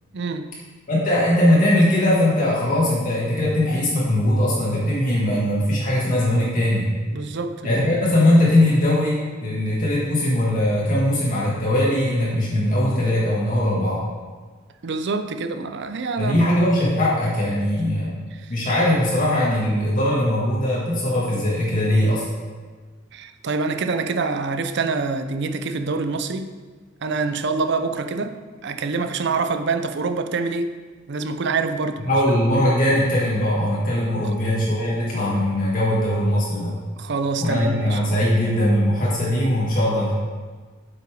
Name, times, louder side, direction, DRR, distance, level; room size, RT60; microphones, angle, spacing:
voice 1, 0.1-0.6 7.1-7.8 14.8-16.5 18.4-18.5 23.1-26.5 27.0-28.3 28.6-30.7 31.1-32.1 34.2-34.4 37.0-38.0, right 4 dB, 55° right, 8 dB, 0.5 m, -26 dB
voice 2, 0.9-6.9 7.6-14.0 16.2-18.2 18.5-22.2 32.0-36.8 37.4-40.1, left 1 dB, 40° left, -6 dB, 1.6 m, -20 dB
8.0 x 5.6 x 4.8 m, 1.5 s
head